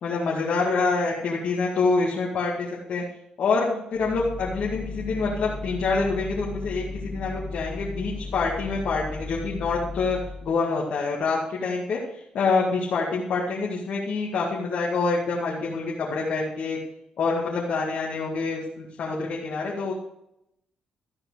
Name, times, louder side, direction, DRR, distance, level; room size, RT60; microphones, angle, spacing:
voice 1, 0.0-3.0 3.4-16.8 17.2-19.9, left 4 dB, 70° left, -3 dB, 2.1 m, -26 dB
sound 1, 3.9-10.5, left 3 dB, 30° left, 1.4 m, -36 dB
13.5 x 4.9 x 6.3 m, 0.81 s
supercardioid pair, 65°, 3 cm